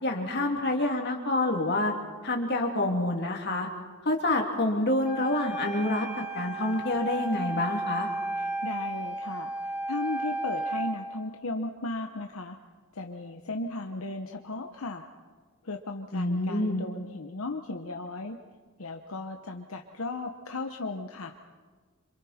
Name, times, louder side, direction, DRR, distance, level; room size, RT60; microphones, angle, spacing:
voice 1, 0.0-1.9 2.2-3.7 4.0-8.1 16.1-16.8, left 1 dB, 50° left, 1 dB, 2.9 m, -27 dB
Wind instrument woodwind instrument, 5.0-11.0, right 2 dB, 5° right, 3.2 m, -33 dB
voice 2, 8.4-9.5 9.9-12.6 12.9-15.1 15.6-18.4 18.8-21.3, left 2 dB, 80° left, 4 dB, 1.0 m, -36 dB
27.0 x 27.0 x 4.4 m, 1.5 s
head